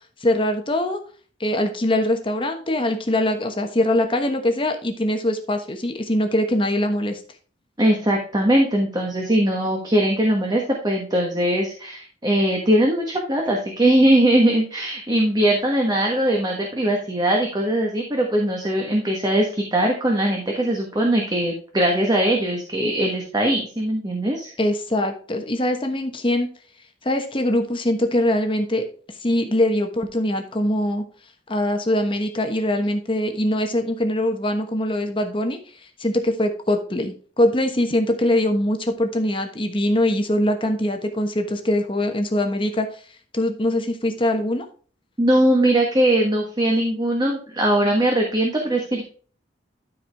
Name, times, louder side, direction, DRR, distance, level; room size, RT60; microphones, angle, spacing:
voice 1, 0.2-1.0 1.4-7.2 24.6-26.5 27.0-28.8 29.2-31.0 31.5-35.6 36.0-42.9 43.3-44.6, left 1 dB, 30° left, 5 dB, 1.2 m, -22 dB
voice 2, 7.8-24.5 45.2-49.0, right 1 dB, 20° right, 0 dB, 1.4 m, -20 dB
12.5 x 4.8 x 3.5 m, 0.41 s
head